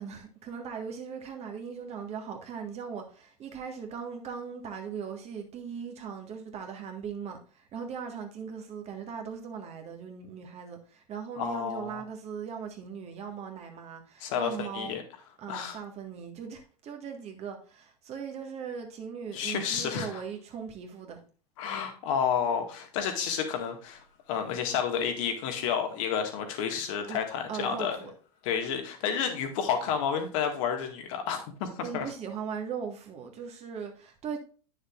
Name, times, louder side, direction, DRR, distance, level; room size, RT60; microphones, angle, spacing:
voice 1, 0.0-15.0 15.4-21.2 27.1-27.2 27.5-28.1 31.8-34.4, right 6 dB, 35° right, 1.7 m, -39 dB
voice 2, 11.4-12.0 14.2-15.0 15.5-15.8 19.3-20.2 21.6-28.0 28.4-32.1, left 7 dB, 55° left, 1.9 m, -30 dB
9.6 x 6.5 x 2.5 m
hypercardioid pair, 90°, 19 cm